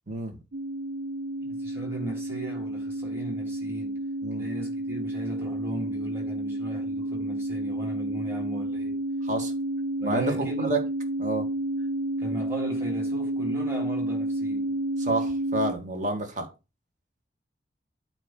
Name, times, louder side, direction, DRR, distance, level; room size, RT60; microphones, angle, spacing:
sound 1, 0.5-15.7, right 1 dB, 80° right, 0.5 m, -30 dB
voice 1, 1.4-4.0 4.4-9.0 10.0-10.8 12.2-14.7, right 1 dB, 15° right, 3.2 m, -37 dB
voice 2, 10.0-10.3 10.6-10.8 11.2-11.5 15.0-16.5, right 2 dB, 40° right, 1.8 m, -29 dB
9.1 x 3.0 x 6.1 m
head